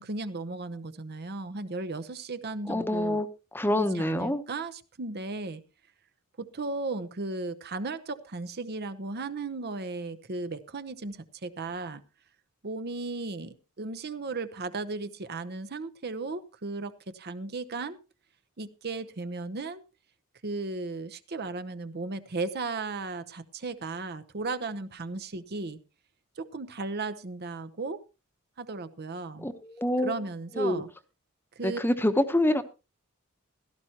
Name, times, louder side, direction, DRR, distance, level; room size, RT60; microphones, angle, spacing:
voice 1, 0.0-3.2 3.8-5.6 6.4-12.0 12.6-18.0 18.6-19.8 20.4-25.8 26.4-28.0 28.6-29.5 30.0-30.9 31.6-31.8, right 3 dB, 50° right, 11 dB, 0.8 m, -35 dB
voice 2, 2.7-3.3 3.5-4.4 29.4-30.1 30.6-30.8 31.6-32.6, left 1 dB, 10° left, 10 dB, 0.9 m, -26 dB
16.5 x 13.5 x 2.9 m, 0.30 s
head